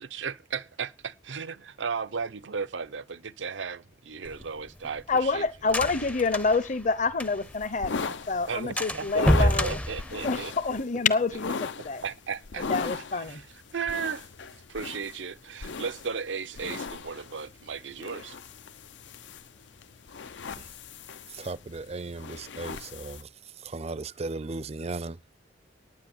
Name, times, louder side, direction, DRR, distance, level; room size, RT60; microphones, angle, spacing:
voice 1, 0.0-5.5 8.5-10.5 12.0-12.7 13.2-13.5 13.7-14.3 14.7-18.4, right 5 dB, 85° right, 0.7 m, -35 dB
sound 1, 4.2-7.7 7.9-8.0 8.3-8.5 8.8-10.8, equal, 10° left, 0.6 m, -28 dB
voice 2, 5.1-9.8 10.2-12.0 12.7-13.4, left 4 dB, 45° left, 0.9 m, -27 dB
brushing hair, 7.4-23.2, left 5 dB, 75° left, 0.6 m, -38 dB
voice 3, 21.3-23.3 23.6-25.2, right 3 dB, 35° right, 0.5 m, -36 dB
10.5 x 9.5 x 7.2 m
head